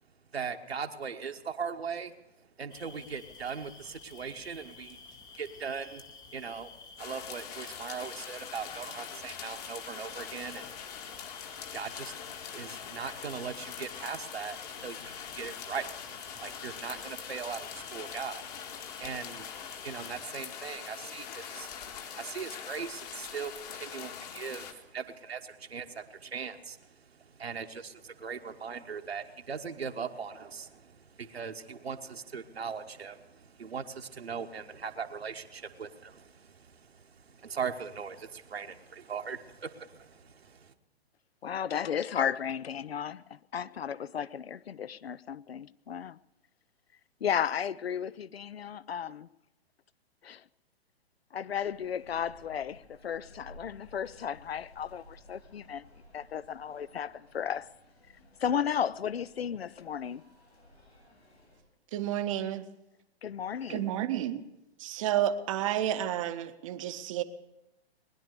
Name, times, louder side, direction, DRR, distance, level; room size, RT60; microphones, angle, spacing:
voice 1, 0.3-6.0 6.3-6.7 7.0-10.9 11.7-12.2 12.5-40.7, right 6 dB, 70° right, 1.2 m, -40 dB
sound 1, 2.7-20.1, left 4 dB, 10° left, 0.8 m, -52 dB
sound 2, 7.0-24.7, left 8 dB, 40° left, 1.8 m, -43 dB
voice 2, 41.4-46.2 47.2-49.3 50.2-50.4 51.3-55.8 56.1-57.7 58.4-60.2 63.2-63.9, left 8 dB, 70° left, 0.6 m, -34 dB
sound 3, 51.5-61.6, left 1 dB, 85° left, 7.9 m, -57 dB
voice 3, 61.9-62.7 63.7-64.4 64.8-67.2, right 11 dB, 30° right, 0.8 m, -31 dB
20.5 x 10.5 x 6.6 m
figure-of-eight pair, 115°, 32 cm